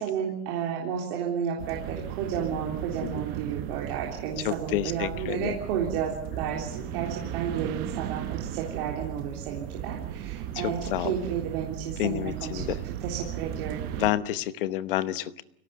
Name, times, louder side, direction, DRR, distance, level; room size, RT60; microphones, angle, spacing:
voice 1, 0.0-12.6 13.0-13.9, right 8 dB, 35° right, -1 dB, 3.7 m, -32 dB
sound 1, 1.6-14.1, right 11 dB, 20° right, 0.9 m, -36 dB
voice 2, 4.4-5.6 10.5-11.1 12.0-12.8 14.0-15.4, left 13 dB, 35° left, 15 dB, 0.9 m, -29 dB
25.0 x 17.5 x 9.4 m, 0.77 s
supercardioid pair, 170°, 48 cm